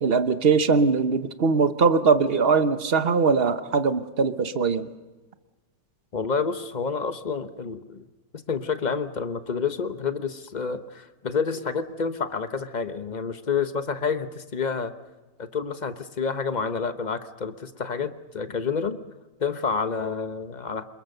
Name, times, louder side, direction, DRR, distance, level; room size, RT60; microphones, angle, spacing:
voice 1, 0.0-4.9, right 5 dB, 50° right, 11 dB, 0.7 m, -21 dB
voice 2, 6.1-8.0 8.3-14.9 15.4-19.0 19.4-20.8, left 5 dB, 40° left, 10 dB, 0.6 m, -29 dB
28.0 x 21.0 x 6.7 m, 1.2 s
omnidirectional pair, 2.3 m